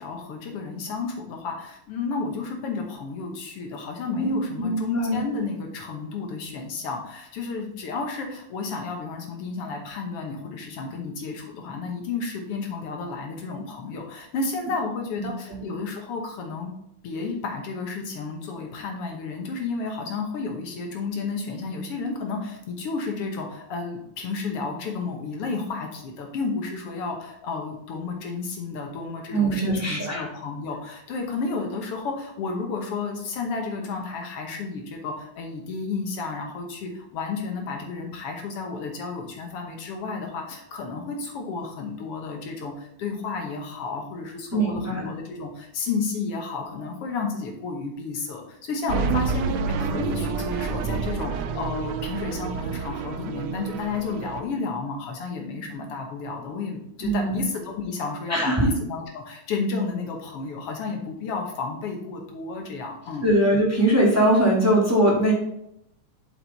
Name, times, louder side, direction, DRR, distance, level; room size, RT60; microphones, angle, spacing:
voice 1, 0.0-16.7 17.0-63.2, left 4 dB, 60° left, 2 dB, 1.6 m, -32 dB
voice 2, 4.1-5.2 15.2-15.6 29.3-30.2 44.5-45.1 57.0-57.4 58.3-58.7 63.2-65.3, right 1 dB, 10° right, -4 dB, 1.0 m, -22 dB
sound 1, 48.9-54.4, right 5 dB, 90° right, 1.5 m, -28 dB
7.8 x 6.4 x 4.1 m, 0.79 s
omnidirectional pair, 3.9 m